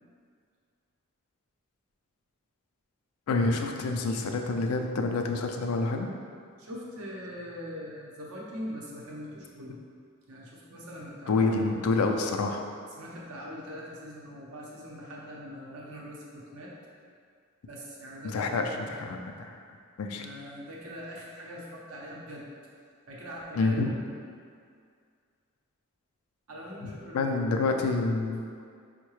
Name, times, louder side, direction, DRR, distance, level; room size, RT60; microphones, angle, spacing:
voice 1, 3.3-6.1 11.3-12.6 18.2-19.6 20.0-20.3 23.6-24.0 27.1-28.4, left 3 dB, 85° left, 3 dB, 0.4 m, -27 dB
voice 2, 6.6-9.8 10.3-11.8 13.0-16.7 17.7-18.9 20.2-22.5 23.1-24.0 26.5-27.9 28.4-28.5, equal, 80° right, -4 dB, 0.7 m, -42 dB
4.6 x 2.1 x 3.0 m, 2.2 s
head